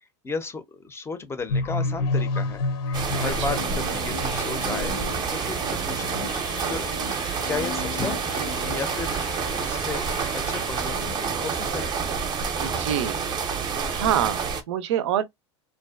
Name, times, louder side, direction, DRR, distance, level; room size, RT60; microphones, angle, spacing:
voice 1, 0.2-2.6 2.9-6.2 6.6-6.9 7.4-8.2 8.7-9.2 9.6-11.9, left 4 dB, 15° left, 0.5 m, -34 dB
sound 1, 1.5-9.4, left 3 dB, 65° left, 0.7 m, -32 dB
sound 2, 2.9-14.6, right 5 dB, 30° right, 0.6 m, -28 dB
sound 3, 3.1-11.1, left 4 dB, 85° left, 1.2 m, -38 dB
voice 2, 12.6-13.2 13.9-15.2, right 10 dB, 75° right, 0.5 m, -26 dB
2.5 x 2.2 x 2.3 m
hypercardioid pair, 100°, 15 cm